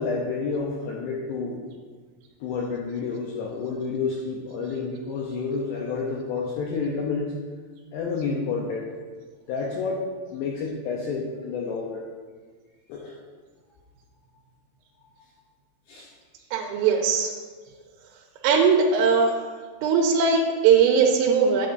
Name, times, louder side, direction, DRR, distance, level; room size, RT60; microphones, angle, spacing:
voice 1, 0.0-1.6 2.4-7.3 7.9-8.9 9.5-12.1 12.9-13.2 15.9-16.1, left 4 dB, 85° left, -1 dB, 2.4 m, -29 dB
voice 2, 16.5-17.3 18.4-19.4 19.8-21.7, right 5 dB, 90° right, 0 dB, 3.3 m, -20 dB
9.3 x 9.1 x 2.6 m, 1.5 s
omnidirectional pair, 5.8 m